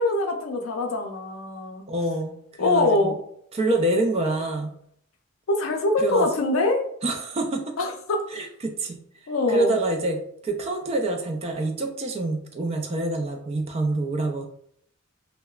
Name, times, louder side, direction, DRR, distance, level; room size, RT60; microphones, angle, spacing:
voice 1, 0.0-1.8 2.6-3.2 5.5-6.8 7.8-8.2 9.3-9.8, left 2 dB, 75° left, 4 dB, 0.5 m, -23 dB
voice 2, 1.9-3.1 3.5-4.7 6.0-6.3 7.0-7.7 8.3-9.0 9.5-14.5, right 2 dB, 30° right, 4 dB, 0.3 m, -26 dB
2.8 x 2.1 x 2.3 m, 0.68 s
head